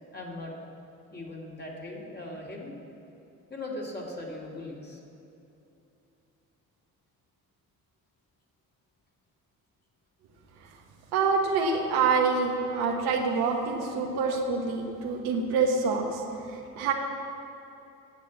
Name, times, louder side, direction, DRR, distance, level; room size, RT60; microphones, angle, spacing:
voice 1, 0.1-0.5 1.1-2.7 3.5-5.0, left 2 dB, 25° left, -3 dB, 2.6 m, -39 dB
voice 2, 11.1-16.2 16.5-16.9, right 4 dB, 85° right, 1 dB, 1.4 m, -26 dB
9.2 x 7.6 x 7.2 m, 2.8 s
supercardioid pair, 60°, 36 cm